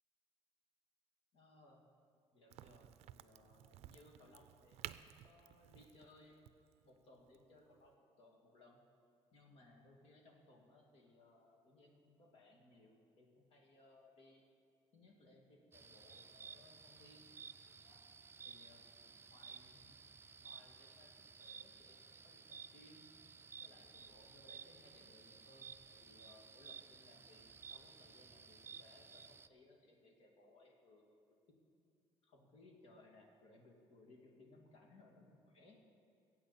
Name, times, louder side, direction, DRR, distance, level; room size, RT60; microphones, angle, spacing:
voice 1, 1.3-1.8 2.3-6.4 6.8-8.8 9.3-14.4 14.9-17.3 17.8-18.1 18.4-18.8 19.3-20.1 20.4-23.0 23.6-31.0 32.2-35.8, left 2 dB, 70° left, 0 dB, 2.4 m, -65 dB
Crack, 2.5-7.9, right 13 dB, 85° right, 0.4 m, -55 dB
sound 1, 15.7-29.5, right 5 dB, 20° right, 0.4 m, -56 dB
22.5 x 8.7 x 4.2 m, 2.4 s
cardioid pair, 125°, 11 cm